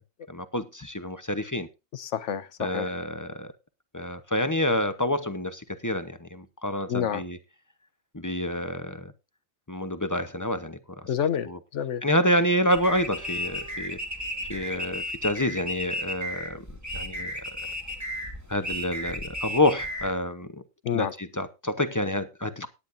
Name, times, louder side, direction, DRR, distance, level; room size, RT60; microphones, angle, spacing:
voice 1, 0.3-1.7 2.6-3.5 3.9-7.4 8.1-9.1 9.7-11.1 11.4-11.6 12.0-14.0 14.5-16.7 16.9-17.3 18.5-20.6 20.9-22.7, left 1 dB, 15° left, 0.8 m, -28 dB
voice 2, 1.9-2.9 6.9-7.2 11.1-11.5 11.7-12.0 20.8-21.1, left 8 dB, 65° left, 1.2 m, -28 dB
sound 1, 12.7-20.1, equal, 10° right, 2.3 m, -34 dB
17.5 x 10.0 x 2.6 m
omnidirectional pair, 1.4 m